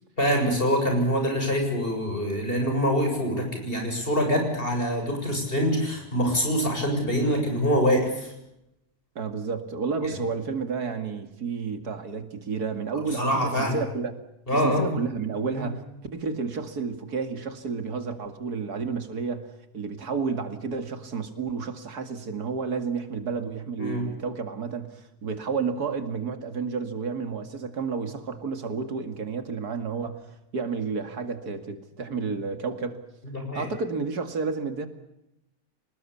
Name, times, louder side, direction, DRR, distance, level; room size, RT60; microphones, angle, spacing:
voice 1, 0.2-8.3 13.1-13.8 14.5-14.9 15.5-15.8 23.8-24.0 33.2-33.7, equal, 35° left, 3 dB, 7.4 m, -25 dB
voice 2, 9.2-14.2 14.5-15.8 16.1-30.2 30.5-33.0 33.5-34.9, right 5 dB, 80° right, 8 dB, 2.7 m, -31 dB
26.0 x 19.5 x 8.5 m, 0.85 s
omnidirectional pair, 1.6 m